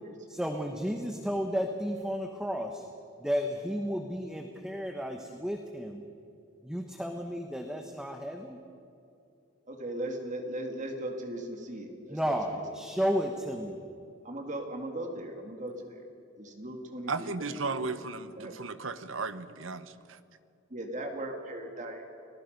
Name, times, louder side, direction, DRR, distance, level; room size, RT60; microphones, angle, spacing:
voice 1, 0.3-2.8 3.2-6.0 6.6-8.6 12.1-13.8, equal, 5° right, 3 dB, 1.1 m, -33 dB
voice 2, 9.7-12.4 14.2-16.0 16.4-17.9 18.4-18.6 20.7-22.0, right 1 dB, 40° right, 3 dB, 2.2 m, -38 dB
voice 3, 17.1-19.9, right 3 dB, 85° right, 12 dB, 1.0 m, -35 dB
30.0 x 19.5 x 5.4 m, 2.7 s
head